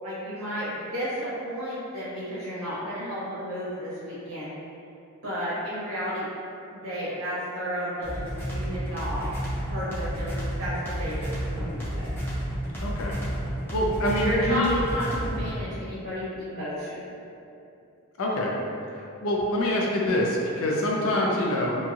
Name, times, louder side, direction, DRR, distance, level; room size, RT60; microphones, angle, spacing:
voice 1, 0.0-4.5 5.2-6.3 6.7-12.1 14.1-17.1 21.1-21.3, equal, 85° right, -10 dB, 0.8 m, -32 dB
sound 1, 8.0-15.6, equal, 10° left, 0.5 m, -31 dB
voice 2, 12.8-13.2 13.7-14.7 18.2-18.5 18.9-21.8, left 1 dB, 80° left, -2 dB, 0.5 m, -25 dB
2.9 x 2.7 x 2.4 m, 2.7 s
head